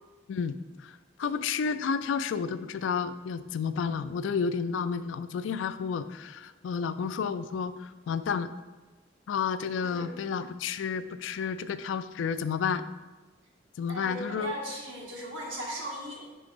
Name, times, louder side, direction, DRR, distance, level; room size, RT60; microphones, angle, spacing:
voice 1, 0.3-8.5 9.3-12.8 13.8-14.5, left 6 dB, 75° left, 12 dB, 0.3 m, -31 dB
voice 2, 9.8-10.1 13.9-16.3, right 1 dB, 90° right, -3 dB, 1.6 m, -38 dB
5.6 x 5.1 x 3.5 m, 1.2 s
head